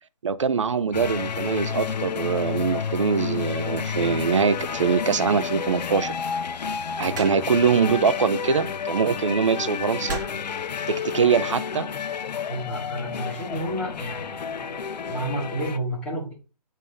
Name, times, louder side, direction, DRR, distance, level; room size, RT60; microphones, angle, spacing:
voice 1, 0.2-6.1 7.0-10.2 10.9-11.9, right 6 dB, 50° right, 0.5 m, -23 dB
sound 1, 0.9-15.8, left 6 dB, 90° left, 0.6 m, -30 dB
sound 2, 7.1-7.7 8.9-9.1 10.1-10.6 11.5-11.8, right 3 dB, 30° right, 1.4 m, -35 dB
voice 2, 12.5-14.5 15.0-16.3, right 1 dB, 5° left, 0.9 m, -30 dB
7.5 x 2.7 x 4.8 m
hypercardioid pair, 175°, 21 cm